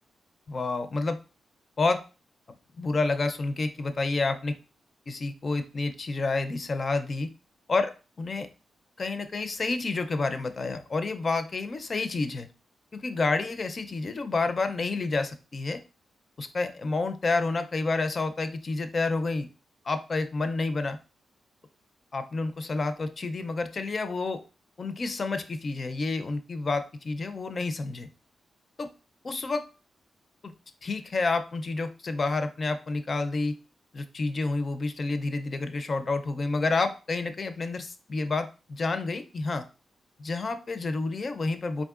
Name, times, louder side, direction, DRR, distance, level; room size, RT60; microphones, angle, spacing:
voice 1, 0.5-1.2 1.8-2.0 2.8-4.5 5.1-7.3 7.7-7.9 8.2-8.5 9.0-12.5 13.0-15.8 16.4-19.5 19.8-21.0 22.1-24.4 24.8-28.1 28.8-28.9 29.2-29.6 30.4-30.5 30.8-33.6 33.9-39.6 40.2-41.8, left 3 dB, 35° left, 9 dB, 0.4 m, -29 dB
4.2 x 3.5 x 2.4 m, 0.34 s
wide cardioid pair, 155°, 0 cm